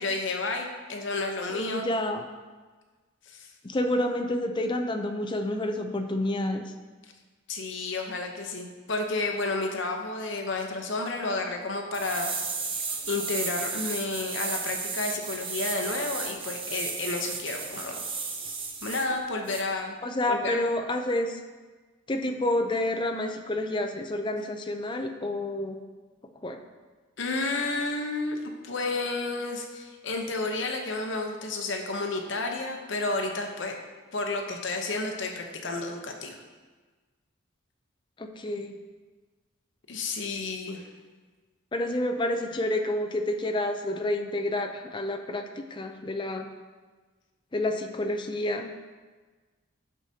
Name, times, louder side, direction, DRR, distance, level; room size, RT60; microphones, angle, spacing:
voice 1, 0.0-1.8 3.3-3.5 7.5-12.3 13.1-18.0 18.8-20.0 20.3-20.6 27.2-33.8 34.1-36.3 39.9-40.8, left 3 dB, 65° left, 3 dB, 0.8 m, -31 dB
voice 2, 1.5-2.2 3.6-6.6 20.0-21.4 22.1-25.8 26.4-26.6 38.2-38.8 41.7-45.4 45.7-46.5 47.5-48.7, left 1 dB, 25° left, 5 dB, 0.5 m, -29 dB
sound 1, 11.9-19.1 19.5-19.6, right 4 dB, 25° right, 0.7 m, -34 dB
9.5 x 6.4 x 2.8 m, 1.4 s
head